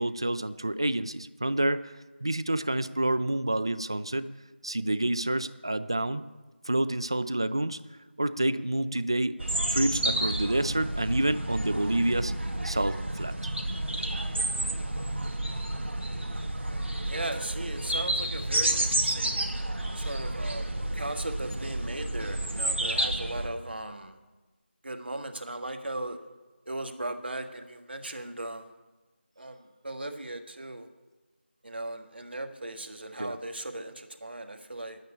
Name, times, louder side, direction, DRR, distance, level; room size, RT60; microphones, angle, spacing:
voice 1, 0.0-1.9 2.2-4.3 4.6-6.3 6.6-7.8 8.2-9.4 9.7-12.3 12.6-13.4 33.2-33.4, right 1 dB, 25° right, 14 dB, 0.4 m, -28 dB
sound 1, 9.4-23.5, right 1 dB, 75° right, 2.0 m, -30 dB
voice 2, 16.6-19.4 19.9-24.2 24.8-26.2 26.7-28.7 29.4-29.6 29.8-30.9 31.6-35.0, right 1 dB, 60° right, 5 dB, 1.6 m, -37 dB
11.0 x 9.2 x 8.4 m, 1.2 s
figure-of-eight pair, 175°, 6 cm